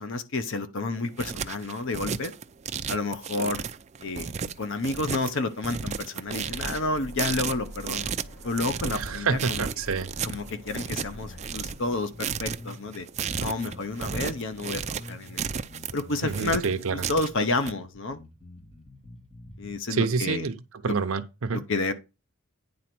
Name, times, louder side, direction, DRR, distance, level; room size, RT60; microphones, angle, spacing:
voice 1, 0.0-2.3 2.9-3.6 4.0-4.3 4.6-8.1 8.4-9.7 10.2-13.1 13.4-15.4 15.9-16.6 16.9-18.2 19.6-20.4 21.5-21.9, left 2 dB, 60° left, 0.8 m, -30 dB
sound 1, 0.9-17.7, right 7 dB, 30° right, 0.4 m, -34 dB
sound 2, 6.2-11.8, equal, 80° left, 2.2 m, -44 dB
voice 2, 8.9-10.1 16.2-17.1 19.9-20.6 20.8-21.6, right 5 dB, 65° right, 0.7 m, -28 dB
sound 3, 10.2-19.8, left 1 dB, 30° left, 1.8 m, -47 dB
9.6 x 3.9 x 6.0 m
head